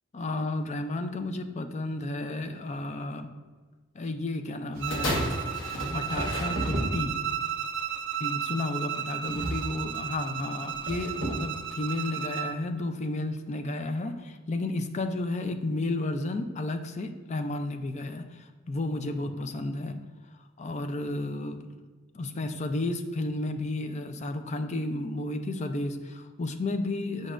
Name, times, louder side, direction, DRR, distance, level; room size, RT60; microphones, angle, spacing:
voice 1, 0.1-3.3 3.9-5.3 5.9-7.2 8.2-20.0 20.6-21.7 22.1-27.3, left 2 dB, 35° left, 7 dB, 0.4 m, -32 dB
sound 1, 4.7-5.4 6.1-7.4 9.3-10.0 10.7-11.6, right 1 dB, 50° right, 0.9 m, -34 dB
Bowed string instrument, 4.8-12.6, right 9 dB, 65° right, 0.4 m, -34 dB
sound 2, 4.9-7.2 8.0-8.1, left 1 dB, 80° left, 1.2 m, -33 dB
8.1 x 5.3 x 2.5 m, 1.3 s
head